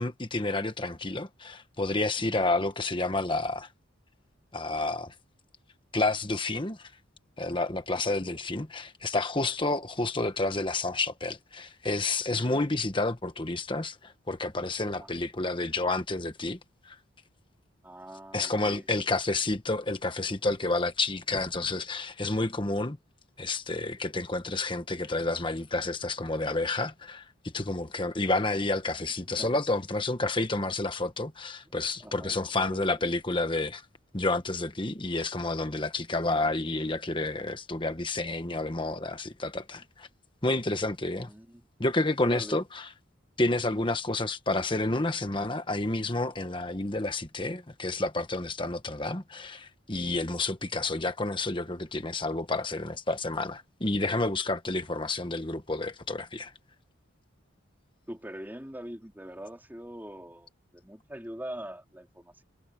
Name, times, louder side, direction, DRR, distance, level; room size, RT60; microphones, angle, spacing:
voice 1, 0.0-3.7 4.5-5.1 5.9-6.9 7.4-16.6 16.8-17.0 18.3-23.0 23.4-33.8 34.1-40.1 40.4-41.3 41.8-42.9 43.4-56.5, left 2 dB, 25° left, 1.4 m, -30 dB
voice 2, 17.8-18.9 29.4-29.8 31.7-33.1 41.1-41.6 42.2-42.6 43.6-43.9 58.1-62.4, equal, 10° right, 3.6 m, -44 dB
head